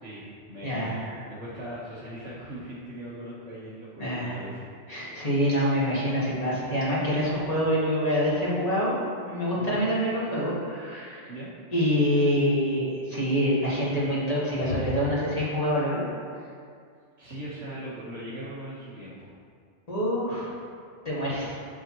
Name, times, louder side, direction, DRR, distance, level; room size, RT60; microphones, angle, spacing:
voice 1, 0.0-4.7 9.5-9.9 11.3-11.5 17.2-19.3, right 1 dB, 60° right, -10 dB, 1.7 m, -40 dB
voice 2, 0.6-1.2 4.0-4.4 4.9-11.3 11.7-16.0 19.9-20.6 21.0-21.5, equal, 35° left, -8 dB, 2.1 m, -26 dB
10.0 x 5.4 x 3.1 m, 2.2 s
omnidirectional pair, 1.2 m